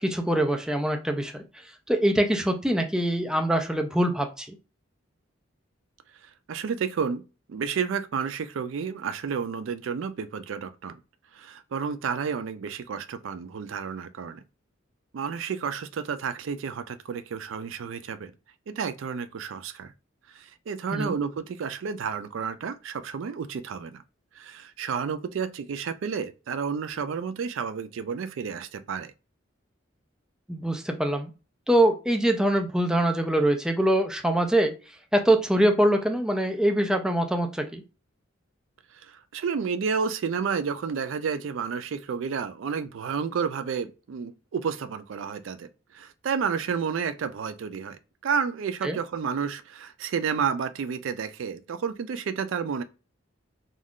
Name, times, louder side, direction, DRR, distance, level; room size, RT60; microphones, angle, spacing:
voice 1, 0.0-1.4 1.9-4.5 20.9-21.1 30.5-31.3 31.7-34.7 35.1-37.8 48.8-49.0, right 1 dB, 5° right, 0.3 m, -23 dB
voice 2, 6.5-7.2 7.5-11.0 11.3-14.4 15.1-18.3 18.7-19.9 20.3-24.0 24.4-29.1 39.0-52.8, right 6 dB, 75° right, 0.4 m, -31 dB
2.5 x 2.3 x 3.5 m
head